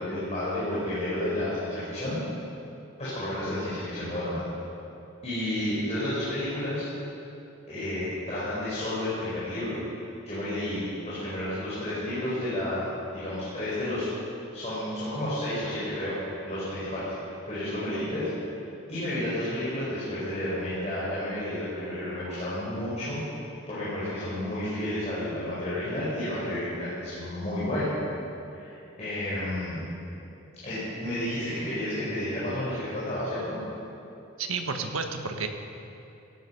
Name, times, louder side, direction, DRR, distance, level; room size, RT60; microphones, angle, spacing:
voice 1, 0.0-2.2 3.0-4.4 5.2-6.9 7.7-14.1 14.5-16.1 16.4-18.3 18.9-23.2 23.7-27.9 28.5-29.8 30.6-33.6, left 1 dB, 30° left, -10 dB, 4.6 m, -31 dB
voice 2, 34.4-35.5, right 4 dB, 80° right, 5 dB, 1.4 m, -31 dB
16.5 x 15.5 x 5.5 m, 2.8 s
head